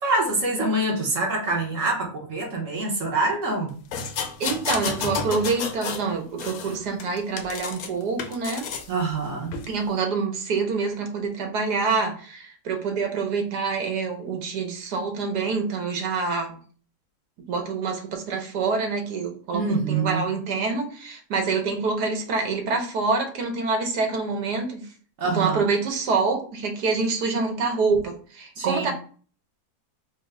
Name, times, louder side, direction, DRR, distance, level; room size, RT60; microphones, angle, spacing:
voice 1, 0.0-3.7 8.9-9.5 19.5-20.2 25.2-25.6 28.6-28.9, right 2 dB, 55° right, 0 dB, 1.1 m, -25 dB
sound 1, 3.9-6.1 6.4-7.9 8.2-8.9 9.5-9.7, left 6 dB, 70° left, 1.0 m, -31 dB
voice 2, 4.4-8.6 9.7-16.5 17.5-24.9 25.3-28.9, right 4 dB, 75° right, 4 dB, 1.4 m, -26 dB
4.3 x 2.0 x 3.5 m, 0.42 s
omnidirectional pair, 1.8 m